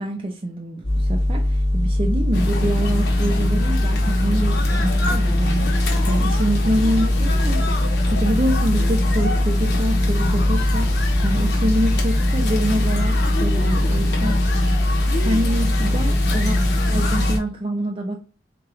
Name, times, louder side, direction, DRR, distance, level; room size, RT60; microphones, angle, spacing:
voice 1, 0.0-5.7 6.1-10.9 11.2-14.4 15.2-16.6 16.9-18.2, right 1 dB, 30° right, 0.4 m, -26 dB
sound 1, 0.8-17.4, left 1 dB, 35° left, 0.9 m, -21 dB
sound 2, 2.3-17.4, left 2 dB, 65° left, 0.9 m, -27 dB
3.6 x 2.9 x 3.2 m
head